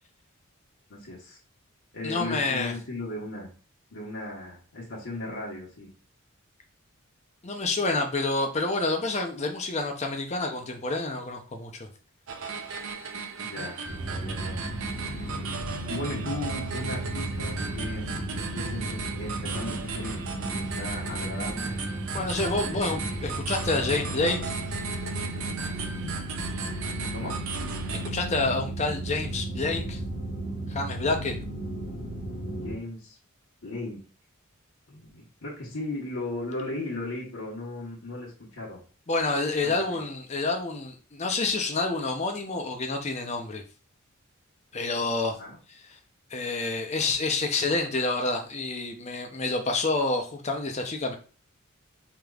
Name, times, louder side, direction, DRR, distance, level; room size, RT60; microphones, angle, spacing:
voice 1, 0.9-1.4 1.9-3.5 3.9-5.9 13.4-14.7 15.1-21.8 22.6-22.8 27.1-27.4 31.3-31.5 32.6-33.2 33.6-34.0 34.9-38.8 39.6-40.0 45.4-45.6, left 2 dB, 85° left, -6 dB, 1.1 m, -37 dB
voice 2, 2.0-2.7 7.4-11.9 22.1-24.5 27.9-30.0 30.7-31.4 39.1-43.6 44.7-45.4 46.3-51.1, left 3 dB, 30° left, 4 dB, 0.7 m, -28 dB
sound 1, 12.3-28.1, right 5 dB, 75° right, 0.6 m, -36 dB
sound 2, 13.9-32.8, right 1 dB, 50° left, 1.0 m, -34 dB
5.0 x 2.9 x 2.4 m, 0.37 s
head